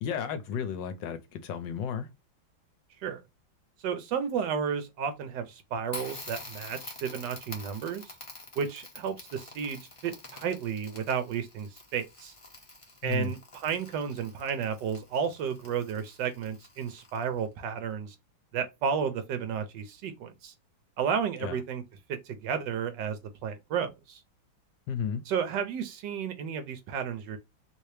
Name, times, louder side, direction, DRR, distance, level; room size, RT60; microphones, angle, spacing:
voice 1, 0.0-2.1 13.0-13.3 21.4-21.6 24.9-25.2, left 7 dB, 75° left, 1.2 m, -33 dB
voice 2, 3.8-8.0 8.6-12.3 13.0-18.1 18.5-20.5 21.0-21.8 22.1-24.2 25.3-27.4, right 7 dB, 75° right, 1.1 m, -32 dB
Crackle, 5.9-17.5, left 2 dB, 30° left, 0.6 m, -47 dB
3.2 x 2.8 x 3.1 m
omnidirectional pair, 2.1 m